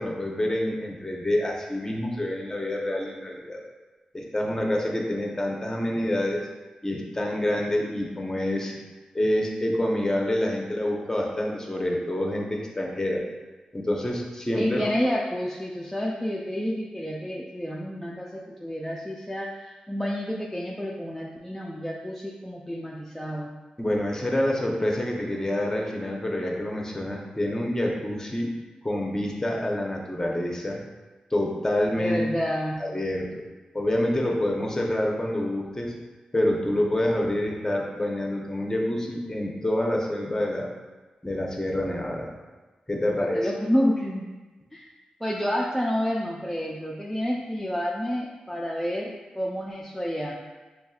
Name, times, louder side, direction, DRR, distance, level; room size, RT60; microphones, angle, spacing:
voice 1, 0.0-3.6 4.1-6.5 6.8-8.8 9.1-13.3 13.7-14.9 23.8-28.5 28.8-30.8 31.3-32.2 32.8-33.4 33.7-35.9 36.3-40.7 41.2-42.3 42.9-43.5, left 1 dB, 20° left, -1 dB, 0.9 m, -27 dB
voice 2, 14.5-23.5 32.0-32.8 43.0-44.3 44.7-44.9 45.2-50.3, equal, 5° left, -4 dB, 0.5 m, -29 dB
5.2 x 3.0 x 2.4 m, 1.2 s
cardioid pair, 50°, 3 cm